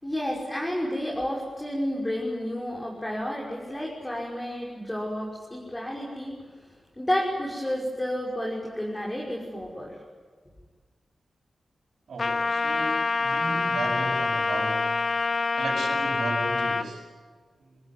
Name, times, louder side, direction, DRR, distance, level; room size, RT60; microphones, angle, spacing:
voice 1, 0.0-6.4 7.0-10.0, equal, 15° left, -3 dB, 5.9 m, -31 dB
voice 2, 12.1-15.0 15.5-17.1, right 3 dB, 85° right, -4 dB, 7.0 m, -35 dB
Trumpet, 12.2-16.9, left 4 dB, 55° left, 2.1 m, -26 dB
30.0 x 20.0 x 9.5 m, 1.5 s
wide cardioid pair, 80°, 0 cm